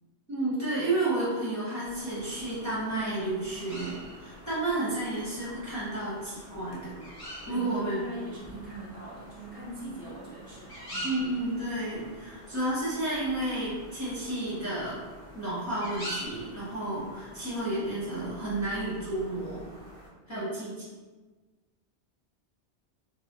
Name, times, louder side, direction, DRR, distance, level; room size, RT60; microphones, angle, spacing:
voice 1, 0.3-7.0 7.5-8.0 11.0-15.0 15.3-19.7 20.3-20.7, right 2 dB, 20° left, -10 dB, 0.8 m, -31 dB
sound 1, 1.8-20.1, equal, 40° left, 0.5 m, -45 dB
voice 2, 7.5-11.1 20.3-20.5, right 1 dB, 60° right, -7 dB, 1.1 m, -42 dB
2.6 x 2.1 x 3.4 m, 1.3 s
omnidirectional pair, 1.1 m